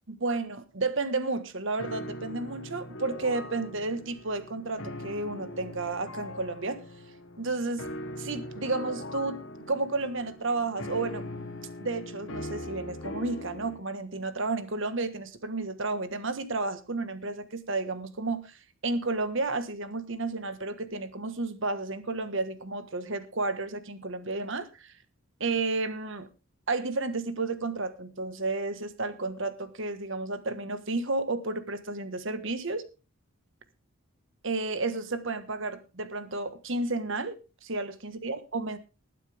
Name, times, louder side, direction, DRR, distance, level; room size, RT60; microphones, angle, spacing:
voice 1, 0.1-6.8 7.4-7.9 8.1-9.4 9.6-11.2 11.8-18.5 18.8-24.9 25.4-26.3 26.7-32.8 34.4-38.8, right 3 dB, 55° right, 11 dB, 1.5 m, -32 dB
sound 1, 1.8-13.8, left 1 dB, 60° left, 1.9 m, -41 dB
20.0 x 9.5 x 3.5 m, 0.30 s
head